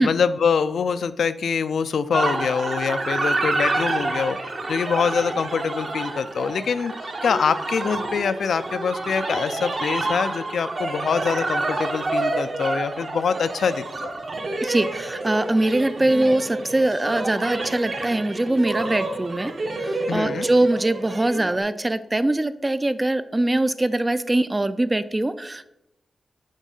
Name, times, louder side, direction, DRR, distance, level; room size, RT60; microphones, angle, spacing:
voice 1, 0.0-6.9 7.2-14.1 20.1-20.5, left 6 dB, 80° left, 12 dB, 0.4 m, -24 dB
sound 1, 2.1-21.6, right 2 dB, 45° right, 0.9 m, -28 dB
voice 2, 14.6-19.5 19.8-25.7, right 1 dB, 20° right, 13 dB, 0.3 m, -22 dB
7.3 x 3.6 x 5.4 m, 0.87 s
wide cardioid pair, 120°, 0 cm